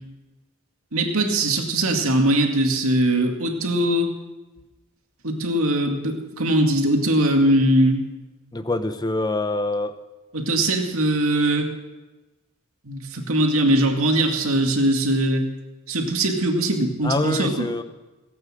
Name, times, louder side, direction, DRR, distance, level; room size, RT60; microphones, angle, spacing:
voice 1, 0.9-4.1 5.2-8.0 10.3-11.7 12.8-15.5 15.9-17.7, right 1 dB, 75° right, 3 dB, 2.3 m, -21 dB
voice 2, 8.5-9.9 17.0-17.8, left 2 dB, 20° left, 10 dB, 0.8 m, -25 dB
18.0 x 8.8 x 7.7 m, 1.2 s
head